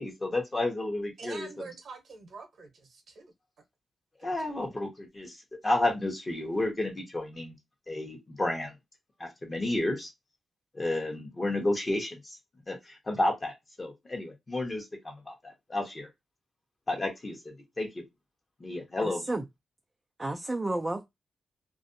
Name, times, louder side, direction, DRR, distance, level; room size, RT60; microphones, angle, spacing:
voice 1, 0.0-1.5 4.2-7.6 7.9-8.7 9.2-10.1 10.7-12.4 12.7-16.1 16.9-18.0 18.6-19.2, left 2 dB, 30° left, 0.9 m, -31 dB
voice 2, 1.2-3.3 4.2-4.7, right 4 dB, 65° right, 0.8 m, -46 dB
voice 3, 19.0-19.4 20.2-21.0, right 2 dB, 20° right, 0.3 m, -31 dB
2.5 x 2.0 x 2.6 m
cardioid pair, 90°, 0 cm